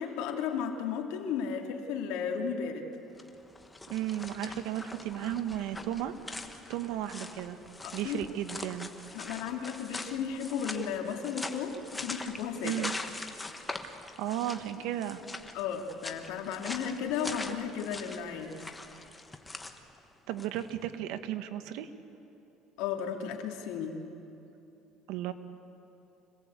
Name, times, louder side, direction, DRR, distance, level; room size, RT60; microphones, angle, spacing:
voice 1, 0.0-2.9 7.8-8.2 9.1-12.8 15.5-18.6 22.8-24.0, left 7 dB, 80° left, 3 dB, 2.6 m, -34 dB
sound 1, 3.1-20.7, left 2 dB, 10° left, 1.3 m, -43 dB
voice 2, 3.9-6.1 6.7-7.6 7.9-8.9 12.6-12.9 13.8-15.2 20.3-21.9 25.1-25.3, right 12 dB, 75° right, 9 dB, 1.4 m, -34 dB
25.5 x 18.0 x 8.3 m, 2.9 s
cardioid pair, 145°, 0 cm